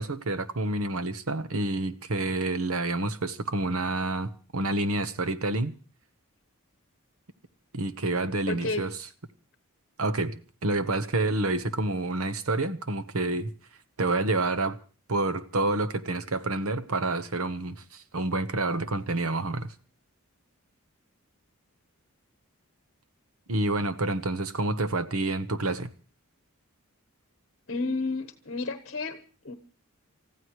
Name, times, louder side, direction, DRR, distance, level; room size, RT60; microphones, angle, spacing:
voice 1, 0.0-5.7 7.7-8.9 10.0-13.5 14.0-14.8 15.1-19.7 23.5-25.9, right 2 dB, 80° right, 1.2 m, -28 dB
voice 2, 8.5-8.8 27.7-29.6, left 3 dB, 50° left, 1.1 m, -31 dB
29.5 x 15.0 x 3.2 m
head